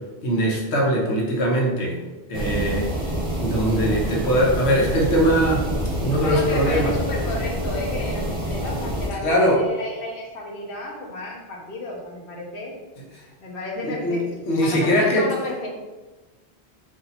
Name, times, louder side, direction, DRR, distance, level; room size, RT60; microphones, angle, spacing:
voice 1, 0.2-2.0 2.3-2.9 3.4-5.7 6.0-6.9 9.2-9.7 13.8-15.3, equal, 90° left, -2 dB, 1.2 m, -21 dB
sound 1, 2.3-9.1, equal, 35° right, 0.9 m, -27 dB
voice 2, 6.2-12.8 13.4-14.2 14.6-15.7, left 1 dB, 60° left, -2 dB, 1.0 m, -32 dB
4.1 x 2.8 x 4.0 m, 1.2 s
omnidirectional pair, 1.1 m